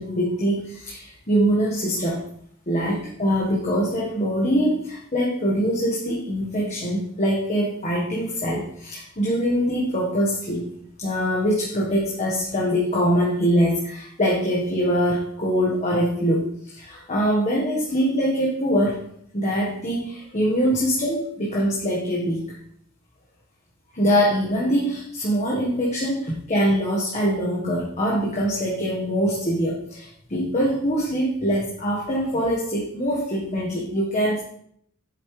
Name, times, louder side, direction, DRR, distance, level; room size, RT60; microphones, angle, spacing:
voice 1, 0.0-2.2 2.7-10.6 11.0-19.0 19.3-22.6 23.9-34.4, equal, 35° left, -4 dB, 1.5 m, -23 dB
8.1 x 7.2 x 3.3 m, 0.67 s
head